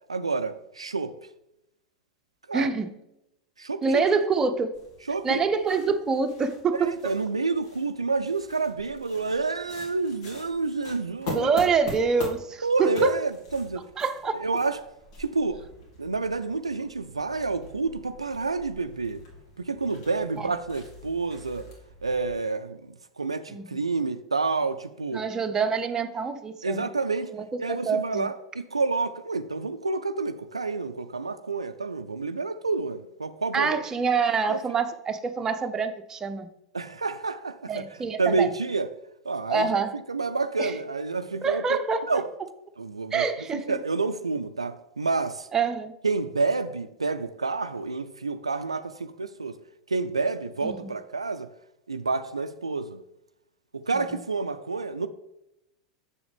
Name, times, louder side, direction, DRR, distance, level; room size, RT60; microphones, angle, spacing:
voice 1, 0.1-1.1 2.5-2.7 3.6-4.0 5.1-5.4 6.8-11.5 12.6-13.9 14.4-14.8 15.2-15.6 16.0-19.2 19.6-21.7 22.0-25.2 26.6-27.3 27.6-33.8 34.5-34.6 36.7-37.8 38.2-38.9 39.3-41.8 42.1-42.3 42.8-43.3 43.5-45.5 46.0-49.6 49.9-51.5 51.9-53.0 53.7-55.1, right 3 dB, 80° right, 0.3 m, -29 dB
voice 2, 2.5-2.9 3.8-4.7 5.2-7.0 11.3-13.2 14.0-14.4 20.4-20.5 23.5-23.9 25.1-26.9 27.3-28.3 33.5-36.5 37.7-38.5 39.5-39.9 40.6-40.8 41.4-42.2 43.1-43.8 45.5-45.9 50.6-51.0, right 5 dB, 20° right, 0.7 m, -26 dB
sound 1, 4.7-22.4, left 2 dB, 55° left, 2.3 m, -43 dB
7.0 x 6.7 x 3.5 m
figure-of-eight pair, 85°, 3 cm